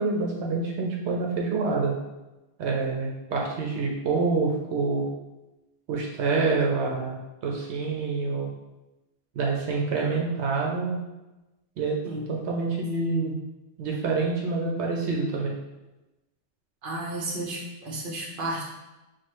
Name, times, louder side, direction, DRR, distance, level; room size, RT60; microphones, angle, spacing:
voice 1, 0.0-1.9 2.6-5.1 5.9-8.5 9.3-11.0 11.8-12.0 12.5-13.3 13.8-15.5, right 4 dB, 80° right, -1 dB, 0.9 m, -27 dB
voice 2, 12.0-12.3 16.8-18.6, right 2 dB, 55° right, -1 dB, 1.0 m, -32 dB
6.1 x 2.3 x 3.0 m, 1.0 s
omnidirectional pair, 1.1 m